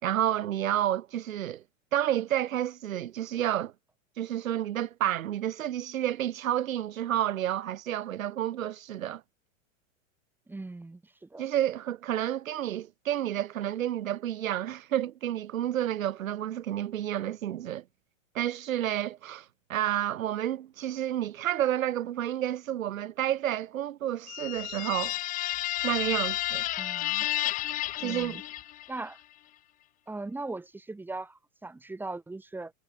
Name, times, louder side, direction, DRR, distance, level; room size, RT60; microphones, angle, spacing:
voice 1, 0.0-1.6 1.9-3.7 4.2-9.2 11.4-17.8 18.3-25.2 25.8-26.6 28.0-28.4, right 11 dB, 85° right, 6.1 m, -30 dB
voice 2, 10.5-11.5 26.8-27.3 28.0-28.4 28.9-29.2 30.1-32.7, right 2 dB, 5° right, 5.6 m, -39 dB
sound 1, 24.3-29.0, left 15 dB, 20° left, 1.2 m, -31 dB
supercardioid pair, 165°, 40 cm